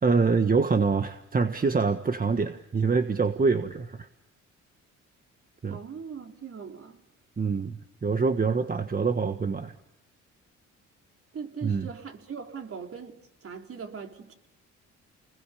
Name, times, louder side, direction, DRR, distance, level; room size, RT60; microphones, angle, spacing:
voice 1, 0.0-4.1 5.6-5.8 7.4-9.7 11.6-11.9, right 4 dB, 30° right, 8 dB, 1.4 m, -25 dB
voice 2, 5.7-7.0 11.3-13.2 13.4-14.3, right 6 dB, 50° right, 3 dB, 4.1 m, -40 dB
29.0 x 21.5 x 7.0 m, 0.80 s
cardioid pair, 90°, 30 cm